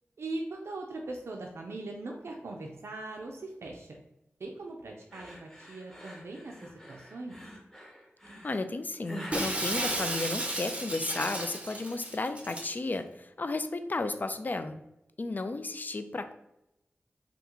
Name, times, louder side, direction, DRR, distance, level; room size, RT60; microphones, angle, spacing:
voice 1, 0.2-4.0 4.4-7.4, right 2 dB, 75° right, 1 dB, 0.4 m, -40 dB
sound 1, 5.1-10.6, equal, 10° left, 1.0 m, -47 dB
voice 2, 8.4-14.8 15.2-16.3, left 3 dB, 40° left, 9 dB, 0.3 m, -33 dB
Shatter, 9.3-12.8, right 1 dB, 30° right, 0.6 m, -33 dB
2.9 x 2.4 x 3.5 m, 0.86 s
cardioid pair, 50°, 4 cm